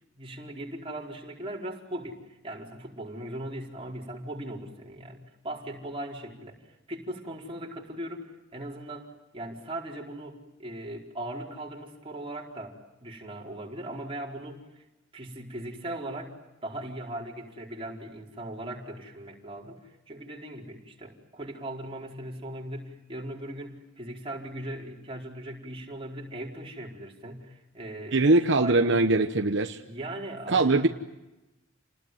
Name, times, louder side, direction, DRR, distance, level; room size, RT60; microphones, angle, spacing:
voice 1, 0.2-14.6 15.1-16.3 16.6-19.8 20.1-29.1 29.8-30.9, right 1 dB, 30° right, -2 dB, 4.6 m, -39 dB
voice 2, 28.1-29.8 30.5-30.9, right 2 dB, 60° right, 6 dB, 1.1 m, -22 dB
29.5 x 20.0 x 9.2 m, 1.0 s
head